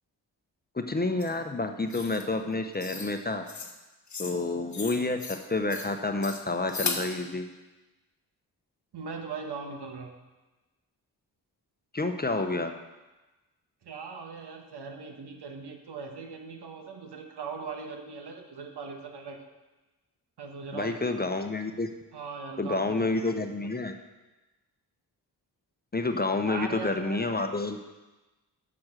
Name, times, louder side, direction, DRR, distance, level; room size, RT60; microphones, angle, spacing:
voice 1, 0.7-3.5 4.2-7.5 11.9-12.7 20.7-21.9 22.6-23.9 25.9-27.8, left 2 dB, 20° left, 6 dB, 0.9 m, -29 dB
sound 1, 1.2-1.3 1.9-2.3 2.8-3.1 3.5-3.7 4.1-4.4 4.7-5.4 5.7-5.9 6.2-7.1, left 5 dB, 40° left, 1.3 m, -36 dB
voice 2, 8.9-10.1 13.8-19.4 20.4-21.2 22.1-23.7 26.3-27.5, right 4 dB, 65° right, 3 dB, 1.4 m, -40 dB
7.1 x 6.1 x 6.5 m, 1.1 s
supercardioid pair, 40°, 43 cm